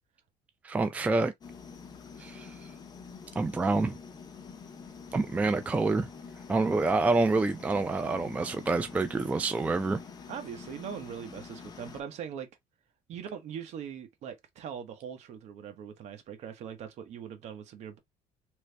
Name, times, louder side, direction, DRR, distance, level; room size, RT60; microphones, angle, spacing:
voice 1, 0.6-1.3 2.2-2.5 3.4-4.0 5.1-6.1 6.5-10.0, right 3 dB, 10° right, 0.3 m, -27 dB
sound 1, 1.4-12.0, left 5 dB, 30° left, 0.7 m, -47 dB
voice 2, 10.3-12.5 13.1-18.0, right 8 dB, 55° right, 1.0 m, -41 dB
3.1 x 2.7 x 3.3 m
cardioid pair, 125°, 13 cm